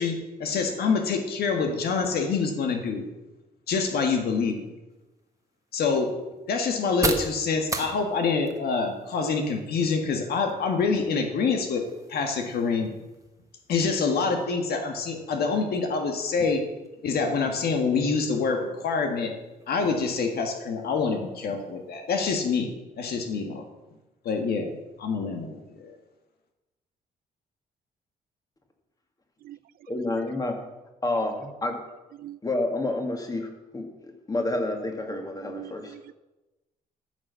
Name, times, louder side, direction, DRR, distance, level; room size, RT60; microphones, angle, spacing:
voice 1, 0.0-3.1 3.7-4.7 5.7-6.1 6.5-12.9 13.7-16.7 17.0-19.3 19.7-22.7 23.0-23.7 24.3-25.9, left 4 dB, 70° left, 4 dB, 1.8 m, -26 dB
sound 1, 4.9-22.5, right 3 dB, 20° right, 1.3 m, -41 dB
voice 2, 29.9-30.6 31.0-31.8 32.4-33.9 34.3-36.0, left 2 dB, 20° left, 3 dB, 2.2 m, -29 dB
voice 3, 35.1-36.1, right 13 dB, 65° right, 20 dB, 0.4 m, -43 dB
14.0 x 6.6 x 6.9 m, 1.1 s
cardioid pair, 120°, 17 cm